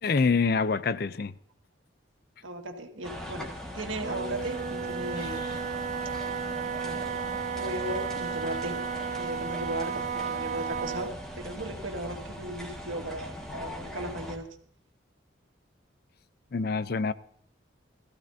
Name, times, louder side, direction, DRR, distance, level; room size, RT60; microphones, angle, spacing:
voice 1, 0.0-1.3 16.5-17.1, left 4 dB, 50° left, 0.5 m, -26 dB
voice 2, 2.4-3.5 3.7-5.5 6.8-7.0 7.6-8.8 9.1-11.1 11.4-14.5, right 1 dB, 90° right, 1.9 m, -36 dB
sound 1, 3.0-14.4, equal, 5° left, 1.6 m, -40 dB
Wind instrument woodwind instrument, 4.0-11.2, right 6 dB, 40° right, 0.4 m, -33 dB
20.5 x 14.5 x 2.7 m
head